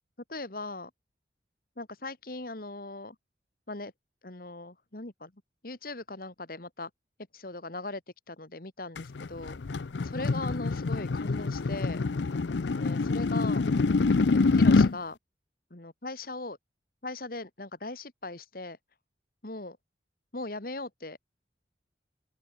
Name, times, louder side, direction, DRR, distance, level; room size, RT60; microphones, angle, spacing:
voice 1, 0.3-0.9 1.8-3.2 3.7-3.9 4.2-5.3 5.6-6.9 7.3-8.0 8.3-9.6 10.0-12.0 12.7-13.7 14.4-15.2 15.7-16.6 17.0-18.8 19.4-19.8 20.3-21.2, left 2 dB, 55° left, 1.9 m, -39 dB
sound 1, 9.0-15.0, left 3 dB, 80° left, 0.6 m, -26 dB
head